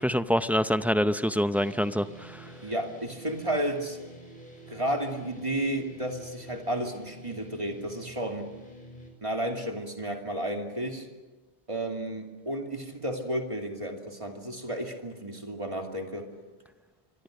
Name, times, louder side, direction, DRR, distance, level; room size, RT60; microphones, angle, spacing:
voice 1, 0.0-2.5, equal, ahead, 11 dB, 0.4 m, -26 dB
sound 1, 1.5-9.1, equal, 45° left, 5.3 m, -48 dB
voice 2, 2.6-4.0 4.7-8.5 9.2-11.1 11.7-16.3, right 1 dB, 30° right, 3 dB, 2.7 m, -32 dB
26.5 x 23.5 x 6.6 m, 1.2 s
omnidirectional pair, 1.1 m